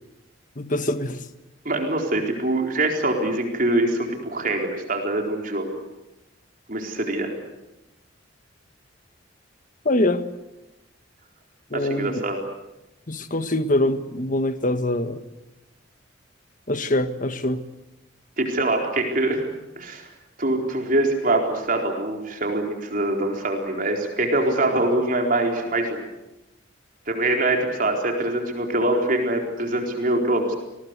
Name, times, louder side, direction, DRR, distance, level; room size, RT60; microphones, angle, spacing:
voice 1, 0.6-1.2 9.8-10.2 11.7-12.2 13.1-15.2 16.7-17.6, left 1 dB, 45° left, 10 dB, 1.6 m, -24 dB
voice 2, 1.6-5.7 6.7-7.3 11.7-12.4 18.4-20.1 20.4-26.0 27.1-30.6, right 2 dB, 50° right, 2 dB, 4.3 m, -24 dB
30.0 x 20.5 x 8.3 m, 0.96 s
head